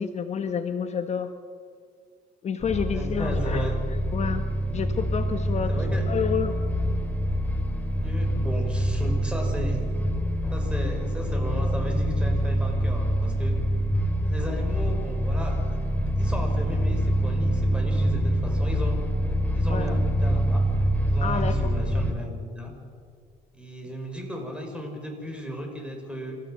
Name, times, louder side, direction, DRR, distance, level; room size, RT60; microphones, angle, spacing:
voice 1, 0.0-1.3 2.4-3.7 4.1-4.5 4.7-5.7 6.1-6.5 19.7-19.9 21.2-21.7, left 7 dB, 40° left, 8 dB, 1.1 m, -29 dB
sound 1, 2.6-22.1, equal, 10° left, 2.2 m, -25 dB
voice 2, 2.9-3.7 5.7-6.0 8.0-9.8 10.5-13.6 14.2-15.8 16.2-19.0 19.5-20.6 21.0-22.7 23.5-26.4, equal, 5° right, 2 dB, 5.7 m, -35 dB
27.0 x 15.0 x 7.8 m, 2.1 s
cardioid pair, 110°, 17 cm